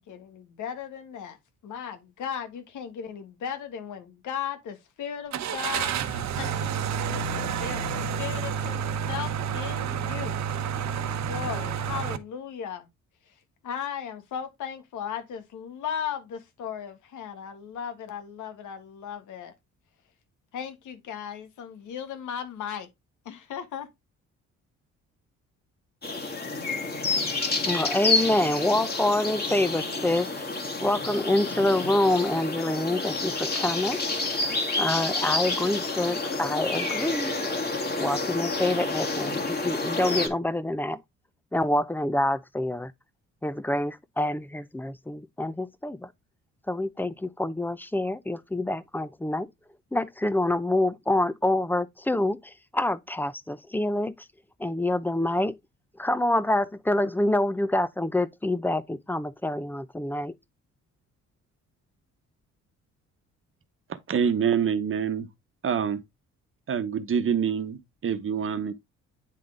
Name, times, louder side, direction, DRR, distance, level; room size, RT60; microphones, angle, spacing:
voice 1, 0.0-1.4 1.6-10.4 11.2-12.9 13.6-19.5 20.5-22.9 23.2-23.9, left 8 dB, 80° left, 1.6 m, -36 dB
Car / Engine starting, 5.3-12.2, right 7 dB, 65° right, 0.9 m, -29 dB
sound 1, 26.0-40.3, left 3 dB, 30° left, 2.0 m, -29 dB
voice 2, 27.7-30.6 30.8-34.0 34.4-37.4 38.0-41.0 41.5-42.9 43.4-46.1 46.7-49.5 49.9-54.3 54.6-55.6 56.0-60.3, left 1 dB, 5° left, 0.6 m, -26 dB
voice 3, 64.1-65.3 65.6-66.0 66.7-68.7, right 7 dB, 45° right, 1.1 m, -26 dB
9.4 x 3.7 x 3.8 m
cardioid pair, 90°, 30 cm